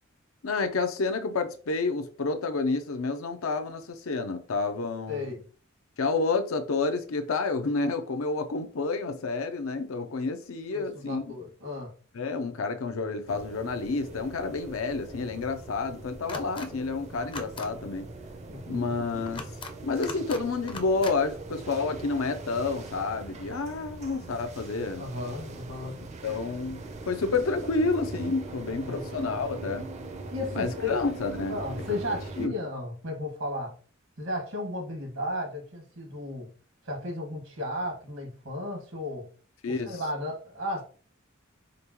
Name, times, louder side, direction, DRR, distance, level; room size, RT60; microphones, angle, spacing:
voice 1, 0.4-5.4 6.0-11.4 12.1-18.1 18.7-19.5 19.8-25.0 26.2-29.9 30.5-31.6 31.9-32.0 32.4-32.5 39.6-40.0, left 3 dB, 85° left, 0.6 m, -29 dB
voice 2, 10.7-11.9 18.5-19.0 25.0-26.0 28.8-29.1 30.3-31.0 31.5-33.7 34.2-36.5 36.9-39.3 39.7-40.8, left 1 dB, 85° right, 1.7 m, -34 dB
sound 1, 13.3-32.5, right 2 dB, 35° right, 0.5 m, -41 dB
sound 2, 16.3-16.7 17.2-17.7 19.3-19.7 20.0-20.4 20.7-21.1, left 3 dB, 25° left, 0.5 m, -39 dB
5.1 x 2.2 x 2.9 m
head